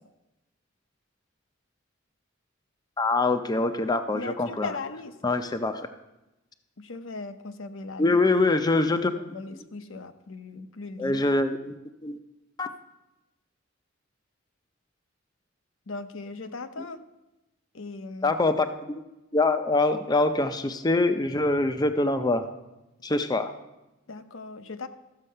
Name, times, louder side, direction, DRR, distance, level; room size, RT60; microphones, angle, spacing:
voice 1, 3.0-4.7 5.2-5.9 8.0-9.1 11.0-11.8 12.0-12.2 12.6-12.7 18.2-19.0 19.3-22.4 23.0-23.5, left 2 dB, 20° left, 8 dB, 0.5 m, -24 dB
voice 2, 4.1-5.2 6.8-8.2 9.3-11.2 15.9-17.0 17.7-18.4 24.1-24.9, left 3 dB, 75° left, 9 dB, 0.7 m, -38 dB
13.5 x 7.4 x 5.5 m, 0.99 s
head